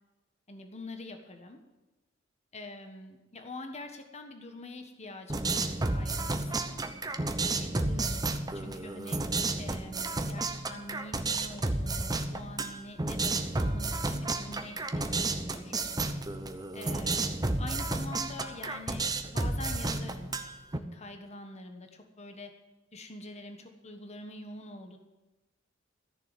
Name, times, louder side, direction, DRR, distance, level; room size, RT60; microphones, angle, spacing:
voice 1, 0.5-1.6 2.5-6.8 7.4-8.2 8.5-9.3 9.6-15.7 16.7-20.4 20.7-22.6 22.9-25.0, left 2 dB, 35° left, 5 dB, 1.4 m, -45 dB
sound 1, 5.3-20.8, right 2 dB, 20° right, 0.9 m, -32 dB
14.0 x 6.9 x 9.5 m, 1.1 s
head